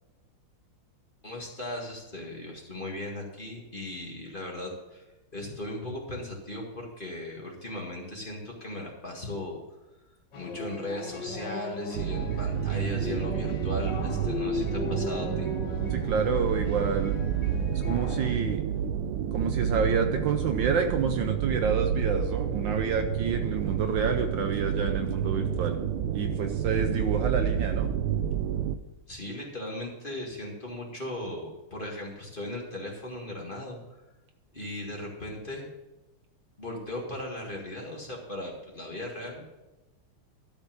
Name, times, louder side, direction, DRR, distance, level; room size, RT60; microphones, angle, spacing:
voice 1, 1.2-5.0 5.3-9.6 10.4-15.5 29.1-33.8 34.5-35.7 36.6-39.4, left 1 dB, 25° left, -1 dB, 1.9 m, -37 dB
sound 1, 10.3-18.3, left 4 dB, 60° left, 1.9 m, -37 dB
sound 2, 11.9-28.8, right 9 dB, 85° right, 1.5 m, -29 dB
voice 2, 15.9-17.2 17.7-18.6 19.3-25.8 26.1-27.9, right 5 dB, 70° right, 6 dB, 1.3 m, -29 dB
12.5 x 5.2 x 7.3 m, 1.0 s
omnidirectional pair, 2.4 m